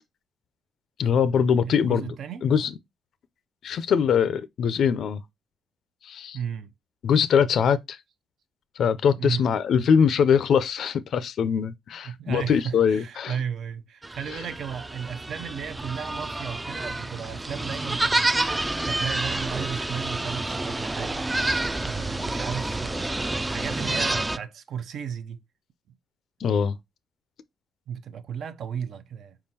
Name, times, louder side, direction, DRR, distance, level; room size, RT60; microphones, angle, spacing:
voice 1, 1.0-2.1 2.4-2.7 3.6-5.2 6.1-6.4 7.0-8.0 8.8-13.3 26.4-26.8, left 7 dB, 65° left, 0.4 m, -22 dB
voice 2, 1.6-2.5 6.3-6.7 9.2-9.5 12.0-18.4 18.8-21.5 21.8-25.4 25.9-26.0 27.9-29.4, right 8 dB, 65° right, 0.5 m, -34 dB
sound 1, 14.0-24.4, right 2 dB, 15° right, 0.3 m, -28 dB
4.5 x 3.7 x 2.7 m
cardioid pair, 90°, 0 cm